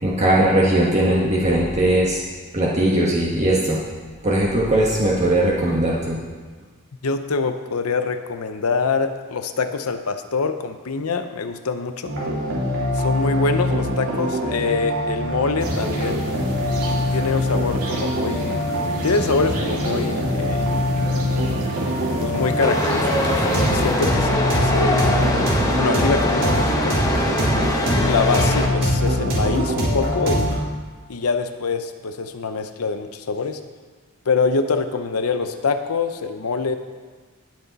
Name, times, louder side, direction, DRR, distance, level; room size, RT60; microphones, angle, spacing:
voice 1, 0.0-2.2 2.5-3.8 4.2-6.2, right 1 dB, 30° right, -4 dB, 1.4 m, -19 dB
voice 2, 7.0-12.1 12.9-16.3 17.1-18.6 19.0-20.7 22.2-25.1 25.7-27.0 27.9-30.7 31.1-33.6 34.3-36.8, left 4 dB, 80° left, 8 dB, 0.7 m, -25 dB
sound 1, 12.0-30.6, equal, 60° right, 3.5 m, -23 dB
sound 2, 15.6-24.0, equal, 80° right, 2.5 m, -30 dB
Chatter / Subway metro underground, 22.6-28.7, left 1 dB, 15° left, 1.2 m, -23 dB
19.0 x 6.4 x 4.1 m, 1.5 s
head